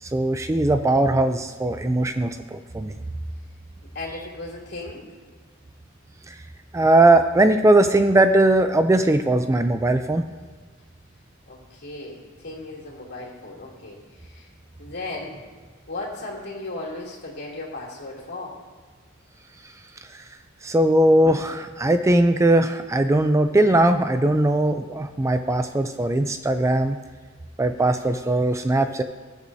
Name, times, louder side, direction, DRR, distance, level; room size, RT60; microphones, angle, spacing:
voice 1, 0.0-2.9 6.3-6.4 6.7-10.2 20.1-20.2 20.6-27.0 27.6-29.0, right 1 dB, 15° right, 8 dB, 0.4 m, -19 dB
voice 2, 3.9-5.1 11.5-14.5 14.8-15.4 15.9-18.6, left 2 dB, 55° left, -3 dB, 2.9 m, -36 dB
21.0 x 8.3 x 2.7 m, 1.5 s
head